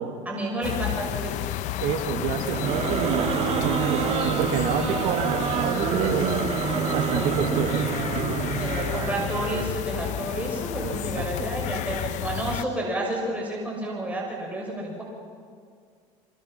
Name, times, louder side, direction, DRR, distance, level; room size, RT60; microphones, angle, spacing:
voice 1, 0.0-1.4 8.6-15.0, right 1 dB, 10° right, -2 dB, 6.7 m, -30 dB
sound 1, 0.6-12.6, left 13 dB, 60° left, 1.0 m, -32 dB
voice 2, 1.8-6.6 6.9-7.8 10.8-11.5, right 8 dB, 65° right, 6 dB, 2.2 m, -29 dB
sound 2, 2.4-9.8, right 6 dB, 50° right, 2.9 m, -27 dB
25.5 x 25.5 x 6.0 m, 2.1 s
supercardioid pair, 90°, 14 cm